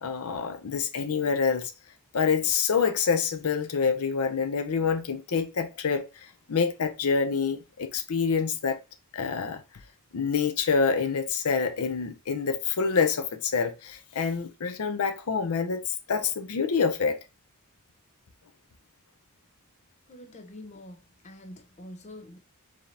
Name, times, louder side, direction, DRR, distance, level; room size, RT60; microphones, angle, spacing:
voice 1, 0.0-1.7 2.1-8.8 9.1-9.6 10.1-17.2, left 5 dB, 70° left, 0.6 m, -27 dB
voice 2, 20.1-22.4, left 1 dB, 30° left, 0.7 m, -45 dB
4.9 x 2.8 x 3.2 m
head